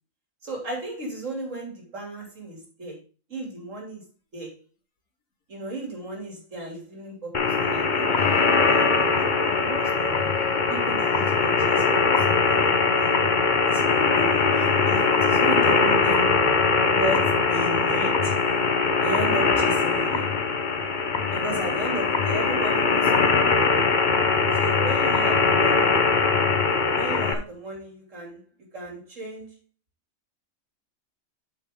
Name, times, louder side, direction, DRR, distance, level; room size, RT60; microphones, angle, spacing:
voice 1, 0.4-3.0 3.3-4.0 4.3-4.6 5.5-10.1 10.7-13.2 13.6-16.4 16.9-18.3 19.0-20.3 21.3-23.5 24.5-26.0 26.9-28.4 28.7-29.6, right 1 dB, 65° right, 3.3 m, -35 dB
sound 1, 7.3-27.3, left 4 dB, 40° left, 0.9 m, -21 dB
sound 2, 8.0-11.0 13.7-15.8 18.4-20.4, left 4 dB, 75° left, 1.8 m, -39 dB
8.8 x 6.3 x 3.6 m
omnidirectional pair, 1.4 m